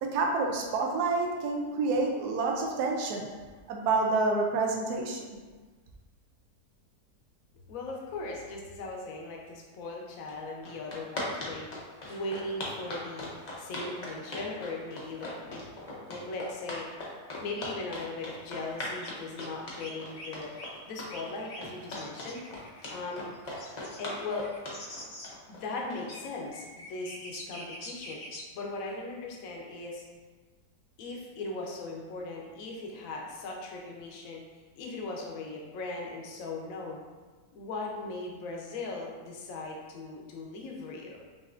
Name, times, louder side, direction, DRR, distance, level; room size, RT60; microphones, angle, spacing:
voice 1, 0.0-3.3 3.7-5.3, right 3 dB, 75° right, 1 dB, 1.1 m, -28 dB
voice 2, 7.7-11.7 12.1-13.3 13.6-15.6 16.1-16.9 17.4-20.5 20.9-22.4 22.9-23.2 24.0-24.5 25.5-28.2 28.5-30.0 31.0-34.4 34.7-37.0 37.5-41.2, left 3 dB, 65° left, -1 dB, 1.0 m, -38 dB
sound 1, 10.3-10.4 10.6-26.2, left 1 dB, 45° left, 0.5 m, -39 dB
sound 2, 19.0-19.1 19.4-19.5 19.8-20.3 20.5-20.7 21.1-21.6 21.9-25.3 26.0-26.2 26.5-28.4, left 1 dB, 85° left, 1.6 m, -45 dB
5.5 x 2.6 x 2.5 m, 1.3 s
omnidirectional pair, 1.7 m